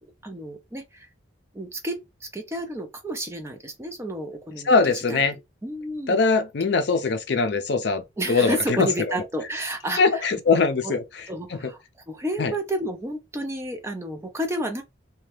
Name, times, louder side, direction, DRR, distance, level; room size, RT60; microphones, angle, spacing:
voice 1, 0.0-1.1 1.5-6.2 8.2-10.2 10.8-11.0 11.3-11.8 12.1-14.8, right 1 dB, 15° right, 0.5 m, -31 dB
voice 2, 4.7-5.4 6.1-8.0 8.3-8.9 10.0-11.0 11.5-11.6 12.4-12.5, left 4 dB, 60° left, 0.5 m, -21 dB
2.7 x 2.2 x 3.2 m
head